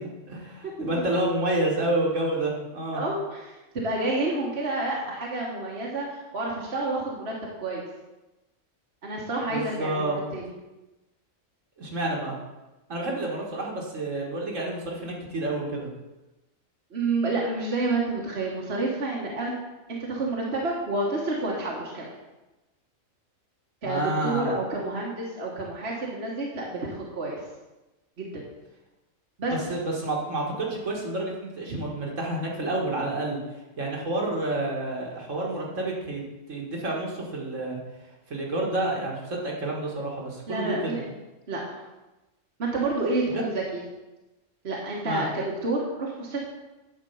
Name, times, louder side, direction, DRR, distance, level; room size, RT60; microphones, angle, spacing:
voice 1, 0.0-3.0 9.5-10.2 11.8-12.4 12.9-15.9 23.8-24.5 29.5-33.4 33.8-36.2 36.5-37.8 38.3-41.0 43.3-43.4 45.1-45.2, right 2 dB, 65° right, -2 dB, 2.3 m, -29 dB
voice 2, 0.8-1.2 2.9-3.4 3.7-7.8 9.0-10.4 16.9-19.5 19.9-22.1 23.8-27.4 28.2-28.4 29.4-29.5 31.7-31.8 40.5-41.0 41.5-41.6 42.6-43.8 44.6-46.4, right 2 dB, 50° right, -3 dB, 1.6 m, -29 dB
10.5 x 4.5 x 6.9 m, 1.0 s
omnidirectional pair, 1.4 m